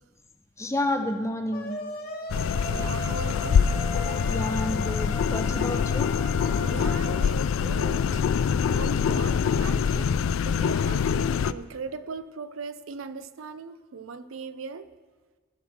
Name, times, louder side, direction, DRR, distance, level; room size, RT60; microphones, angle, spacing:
voice 1, 0.6-1.7 4.3-6.1, left 1 dB, 15° left, 6 dB, 0.7 m, -30 dB
sound 1, 1.5-7.3, left 1 dB, 45° left, 1.3 m, -37 dB
sound 2, 2.3-11.5, left 7 dB, 85° left, 0.3 m, -25 dB
voice 2, 2.7-3.8 6.6-8.2 8.7-14.9, right 5 dB, 90° right, 12 dB, 0.5 m, -39 dB
14.5 x 5.8 x 6.3 m, 1.5 s
head